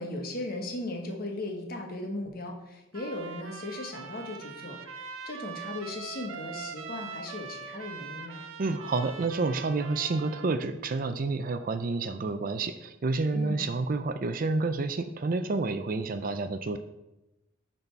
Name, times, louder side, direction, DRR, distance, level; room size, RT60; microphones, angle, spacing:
voice 1, 0.0-8.4 13.3-13.7, left 2 dB, 45° left, 1 dB, 1.3 m, -37 dB
Trumpet, 2.9-10.5, right 6 dB, 75° right, 0.7 m, -42 dB
voice 2, 8.6-16.8, right 3 dB, 40° right, 9 dB, 0.4 m, -29 dB
11.0 x 4.1 x 4.5 m, 0.95 s
head